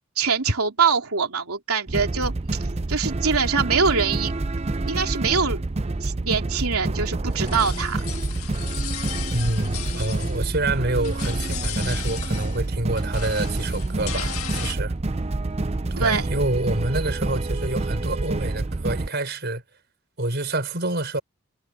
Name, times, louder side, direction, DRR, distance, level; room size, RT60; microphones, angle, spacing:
voice 1, 0.1-4.3 4.9-5.6 6.0-8.0 16.0-16.3, right 5 dB, 90° right, 3.3 m, -24 dB
sound 1, 1.9-19.1, right 2 dB, 30° right, 0.5 m, -27 dB
sound 2, 7.3-10.7 10.9-12.7 12.9-14.7, left 12 dB, 85° left, 1.7 m, -36 dB
voice 2, 9.3-14.9 15.9-19.6 20.2-21.2, right 2 dB, 50° right, 4.8 m, -27 dB
head